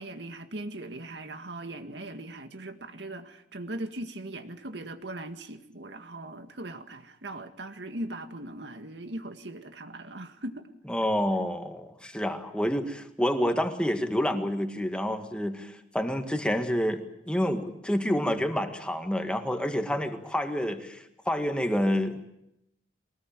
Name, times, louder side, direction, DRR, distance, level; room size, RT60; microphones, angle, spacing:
voice 1, 0.0-10.6, right 1 dB, 70° right, 7 dB, 1.9 m, -39 dB
voice 2, 10.9-22.3, equal, 5° left, 6 dB, 1.9 m, -28 dB
23.0 x 19.5 x 9.1 m, 0.82 s
head